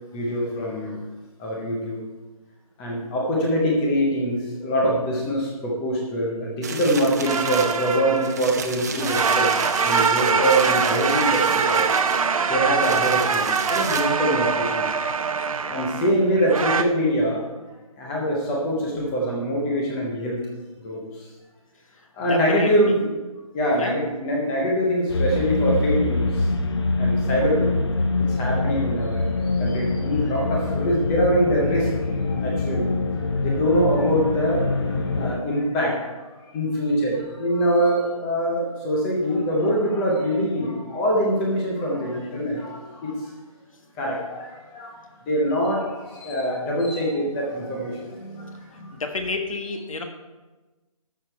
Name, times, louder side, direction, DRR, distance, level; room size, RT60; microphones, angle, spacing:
voice 1, 0.1-1.0 1.4-2.0 2.8-9.5 9.8-12.1 12.5-14.9 15.7-17.4 18.0-20.4 20.8-21.0 22.2-23.1 23.5-26.5 27.0-27.8 28.3-31.9 32.2-33.0 33.4-34.7 35.1-36.0 36.5-43.2 44.0-44.9 45.2-48.9, equal, 5° left, -2 dB, 0.5 m, -24 dB
sound 1, 6.6-14.0, right 5 dB, 30° right, 0.7 m, -34 dB
sound 2, 7.3-8.6 8.9-16.8, right 5 dB, 70° right, 0.7 m, -23 dB
voice 2, 22.3-22.9 23.8-24.0 48.9-50.0, left 3 dB, 65° left, 5 dB, 1.5 m, -30 dB
sound 3, 25.1-35.4, left 3 dB, 45° left, 0.8 m, -24 dB
13.0 x 6.4 x 4.4 m, 1.2 s
hypercardioid pair, 170°, 19 cm